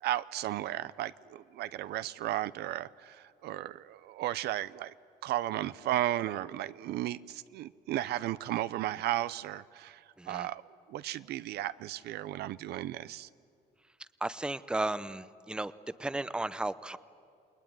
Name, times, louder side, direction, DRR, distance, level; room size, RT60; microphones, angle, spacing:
voice 1, 0.0-4.9 5.2-10.6 10.9-13.3, right 14 dB, 75° right, 16 dB, 0.6 m, -34 dB
voice 2, 10.2-10.5 14.2-15.7 16.0-17.0, right 2 dB, 5° right, 15 dB, 0.7 m, -34 dB
28.5 x 20.5 x 9.4 m, 2.5 s
cardioid pair, 110°, 17 cm